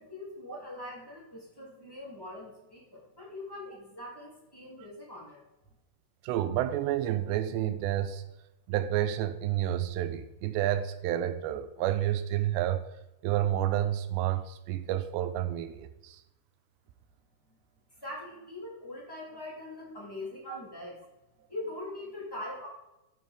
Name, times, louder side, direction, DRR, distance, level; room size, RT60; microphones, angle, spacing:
voice 1, 0.0-5.4 18.0-21.0 21.5-22.7, left 1 dB, 10° left, -4 dB, 1.5 m, -42 dB
voice 2, 6.2-8.2 8.7-12.8 13.2-16.2 20.5-20.6, right 12 dB, 85° right, 10 dB, 2.8 m, -30 dB
9.4 x 7.5 x 3.5 m, 0.94 s
omnidirectional pair, 5.0 m